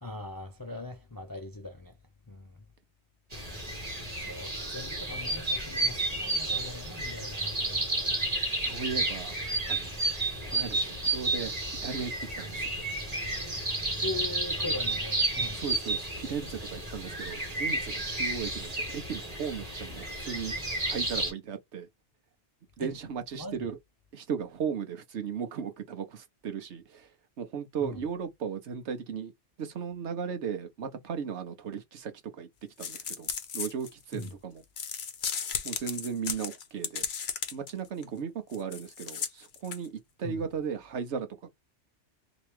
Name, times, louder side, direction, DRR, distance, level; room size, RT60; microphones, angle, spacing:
voice 1, 0.0-1.9 2.3-2.6 4.2-7.8 14.0-15.6 22.8-22.9 23.4-23.7 27.8-28.0 34.1-34.2 40.2-40.4, left 2 dB, 30° left, 0.4 m, -40 dB
sound 1, 3.3-21.3, right 2 dB, 35° right, 1.4 m, -32 dB
voice 2, 8.6-9.3 9.7-10.0 10.4-11.5 11.8-12.7 15.5-20.6 20.8-21.9 22.8-23.8 24.1-29.3 29.6-32.5 32.8-34.6 35.6-37.1 37.5-41.5, right 6 dB, 75° right, 1.1 m, -36 dB
sound 2, 32.8-34.3 34.8-37.7 38.0-38.1 38.5-39.9, left 7 dB, 65° left, 0.9 m, -35 dB
2.9 x 2.9 x 3.2 m
omnidirectional pair, 1.2 m